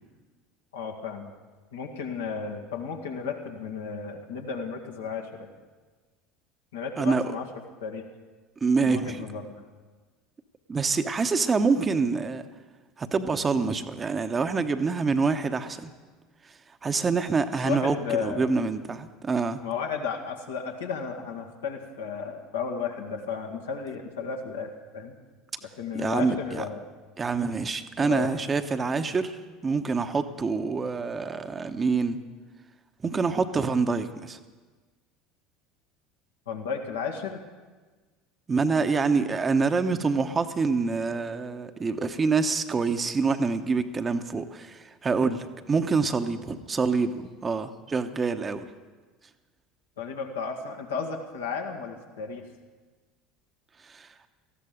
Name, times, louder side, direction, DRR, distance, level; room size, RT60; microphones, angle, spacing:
voice 1, 0.7-1.3 1.7-5.5 6.7-7.5 7.8-8.0 8.8-9.6 17.6-18.4 19.6-25.1 25.6-26.8 28.0-28.3 36.5-37.4 50.0-52.4, left 6 dB, 75° left, 2 dB, 1.9 m, -33 dB
voice 2, 7.0-7.3 8.6-9.2 10.7-12.4 13.0-15.9 16.8-19.6 25.9-26.6 27.2-29.4 29.6-32.2 33.0-34.4 38.5-48.7 53.9-54.1, right 4 dB, 25° right, 8 dB, 1.1 m, -26 dB
18.5 x 14.5 x 5.2 m, 1.3 s
figure-of-eight pair, 70°, 0 cm